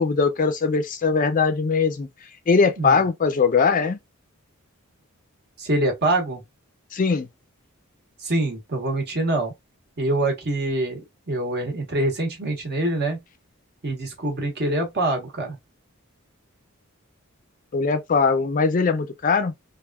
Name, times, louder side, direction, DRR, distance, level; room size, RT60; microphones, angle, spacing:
voice 1, 0.0-2.1 2.5-4.0 6.9-7.3 17.7-19.5, left 5 dB, 40° left, 0.4 m, -21 dB
voice 2, 5.6-6.4 8.2-9.5 10.0-13.2 13.8-15.6, right 2 dB, 50° right, 1.2 m, -25 dB
3.4 x 2.4 x 2.3 m
head